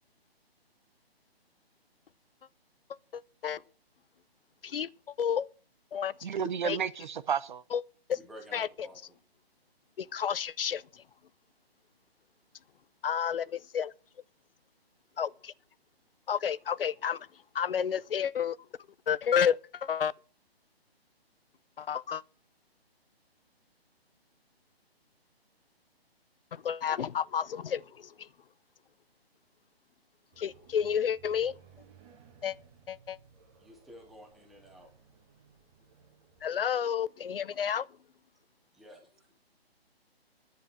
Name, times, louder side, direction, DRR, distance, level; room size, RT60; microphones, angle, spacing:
voice 1, 3.1-3.6 4.6-4.9 5.2-5.5 5.9-6.1 6.6-6.8 7.7-7.8 8.1-8.2 8.5-8.7 10.0-11.0 13.0-13.9 15.2-15.5 16.3-17.3 17.5-18.6 19.1-20.1 21.8-22.2 26.5-28.3 30.4-31.6 32.4-32.6 32.9-33.2 36.4-37.9, left 8 dB, 60° left, 0.6 m, -30 dB
voice 2, 6.2-7.6, right 7 dB, 50° right, 0.8 m, -32 dB
voice 3, 8.1-9.2 33.6-34.9 38.7-39.4, equal, ahead, 0.5 m, -52 dB
sound 1, 30.3-36.5, right 7 dB, 25° right, 1.9 m, -59 dB
10.5 x 8.4 x 7.7 m
hypercardioid pair, 155°, 31 cm